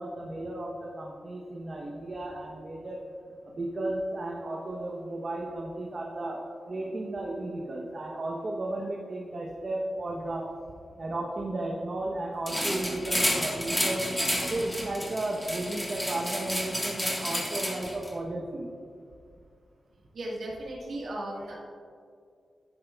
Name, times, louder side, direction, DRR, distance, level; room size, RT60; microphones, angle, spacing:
voice 1, 0.0-3.0 3.5-10.4 11.0-14.1 14.5-18.7, right 2 dB, 40° right, -2 dB, 0.9 m, -34 dB
sound 1, 12.5-18.1, equal, 5° left, 1.4 m, -30 dB
voice 2, 20.1-21.7, right 1 dB, 70° right, -4 dB, 1.5 m, -36 dB
10.5 x 9.2 x 2.3 m, 2.2 s
wide cardioid pair, 140°, 0 cm